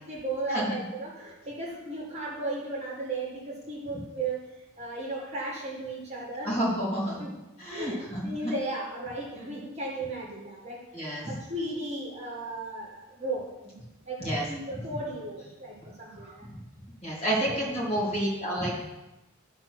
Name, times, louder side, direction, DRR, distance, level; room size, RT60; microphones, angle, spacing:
voice 1, 0.1-4.5 4.8-6.6 7.2-7.3 7.7-13.7 14.0-16.5 17.4-17.8, right 2 dB, 30° right, -3 dB, 1.8 m, -35 dB
voice 2, 6.4-7.3 7.6-8.5 10.9-11.3 14.2-14.4 14.7-14.8 16.2-16.6 17.0-18.8, right 1 dB, 30° left, -5 dB, 2.7 m, -30 dB
12.0 x 4.3 x 6.1 m, 1.0 s
head